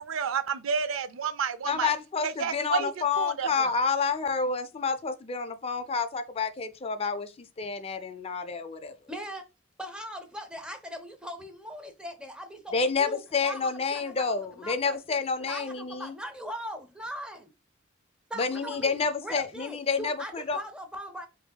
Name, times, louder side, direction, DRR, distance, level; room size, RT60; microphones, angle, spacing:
voice 1, 0.0-1.9 2.2-3.7, right 6 dB, 85° right, 0.5 m, -30 dB
voice 2, 1.7-8.9 12.7-16.1 18.4-20.6, left 5 dB, 30° left, 0.4 m, -29 dB
voice 3, 9.1-9.4 9.8-17.5 18.3-21.3, equal, 5° right, 0.7 m, -40 dB
4.9 x 2.7 x 2.2 m
head